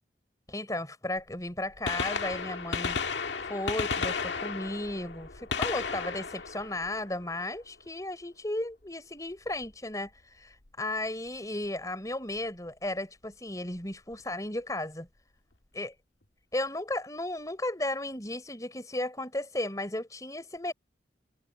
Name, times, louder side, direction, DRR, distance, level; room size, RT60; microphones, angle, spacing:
voice 1, 0.5-15.1 15.7-15.9 16.5-20.7, left 1 dB, 20° left, 4.1 m, -35 dB
Gunshot gunfire, 1.2-1.3 1.7-7.6 9.5-9.7 10.7-10.8 12.4-12.5 13.8-13.9 14.1-14.2, left 5 dB, 85° left, 1.8 m, -34 dB
head